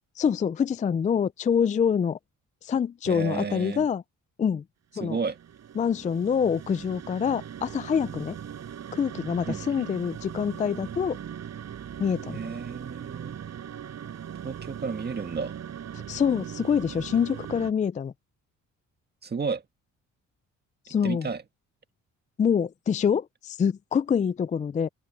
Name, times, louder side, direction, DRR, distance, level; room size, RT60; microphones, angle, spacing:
voice 1, 0.2-2.2 2.6-4.0 4.4-4.6 4.9-5.2 5.8-8.4 8.9-11.2 12.0-12.4 15.9-18.1 20.9-21.3 22.4-24.9, left 7 dB, 25° left, 0.4 m, -26 dB
voice 2, 3.1-3.9 5.0-5.4 9.5-9.9 12.3-13.4 14.4-15.6 19.2-19.6 20.9-21.4, right 5 dB, 35° right, 1.9 m, -32 dB
sound 1, 5.1-17.7, right 9 dB, 60° right, 5.6 m, -40 dB
open air
cardioid pair, 90°, 30 cm